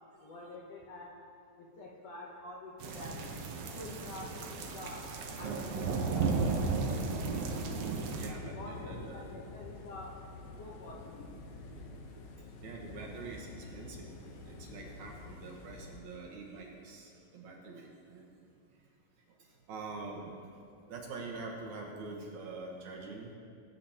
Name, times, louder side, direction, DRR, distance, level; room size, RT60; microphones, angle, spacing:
voice 1, 0.2-1.2 1.6-3.3 3.7-5.0 5.4-6.5 8.4-10.2 10.6-11.4, left 2 dB, 65° left, -3 dB, 1.7 m, -47 dB
sound 1, 2.8-8.3, right 4 dB, 85° right, 1.2 m, -34 dB
sound 2, 7.1-16.0, left 3 dB, 80° left, 2.6 m, -48 dB
voice 2, 8.1-9.2 12.6-14.2 14.4-18.3 19.4-20.5 20.9-23.3, right 3 dB, 65° right, -1 dB, 2.5 m, -45 dB
18.5 x 8.6 x 2.9 m, 2.5 s
omnidirectional pair, 3.8 m